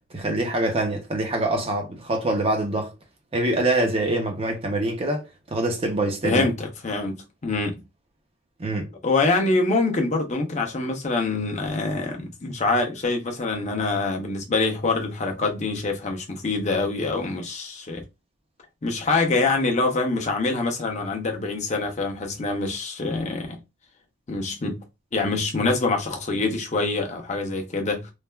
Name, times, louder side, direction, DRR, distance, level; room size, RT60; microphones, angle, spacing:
voice 1, 0.1-2.9 3.3-6.5 8.6-8.9, right 2 dB, 30° right, 0.6 m, -25 dB
voice 2, 6.2-7.8 9.0-18.0 18.8-23.6 24.3-24.8 25.1-28.1, left 3 dB, 35° left, 0.6 m, -25 dB
3.2 x 2.3 x 2.3 m
head